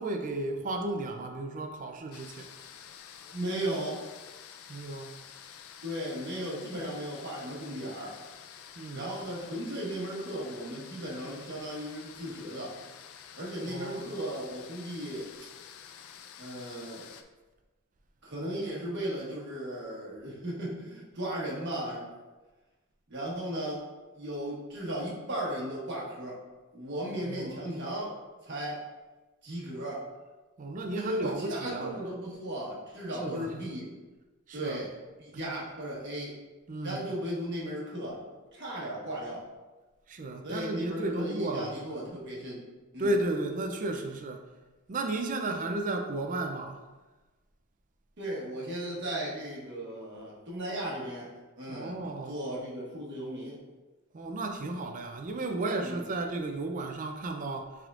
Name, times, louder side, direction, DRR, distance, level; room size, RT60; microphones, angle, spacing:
voice 1, 0.0-2.5 4.7-5.2 6.8-6.9 8.8-9.1 13.6-14.1 27.2-27.6 30.6-31.9 33.2-33.6 34.5-34.8 35.3-35.5 36.7-37.0 40.1-41.8 43.0-44.4 44.9-46.8 51.7-52.4 54.1-57.8, right 2 dB, 35° right, 4 dB, 0.4 m, -34 dB
sound 1, 2.1-17.2, left 8 dB, 65° left, 0.4 m, -49 dB
voice 2, 3.3-4.0 5.8-8.1 8.9-12.7 13.4-15.3 16.4-17.1 18.2-22.0 23.1-23.8 24.1-26.4 26.7-28.1 28.4-28.8 29.4-30.0 30.9-33.8 34.5-34.9 35.2-36.3 36.8-38.2 38.5-39.4 40.4-42.6 42.9-43.1 48.2-51.3 51.6-52.0 52.3-53.6 55.8-56.0, equal, 50° right, -5 dB, 1.3 m, -36 dB
5.9 x 3.6 x 2.5 m, 1.2 s
head